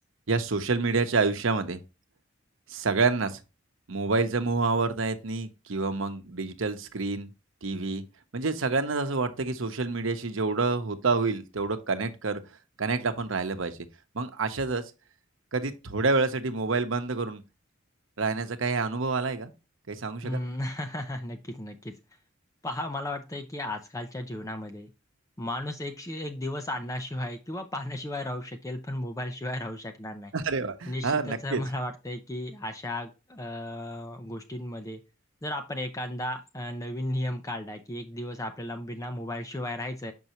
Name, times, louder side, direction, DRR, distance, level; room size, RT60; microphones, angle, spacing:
voice 1, 0.3-1.8 2.7-3.4 3.9-7.3 7.6-8.0 8.3-12.4 12.8-13.8 14.1-14.8 15.5-17.4 18.2-19.5 19.9-20.4 30.3-31.6, right 3 dB, 75° right, 0.9 m, -28 dB
voice 2, 20.2-21.9 22.6-24.9 25.4-30.3 30.9-35.0 35.4-40.1, left 1 dB, 15° left, 0.5 m, -34 dB
6.7 x 5.4 x 3.0 m
head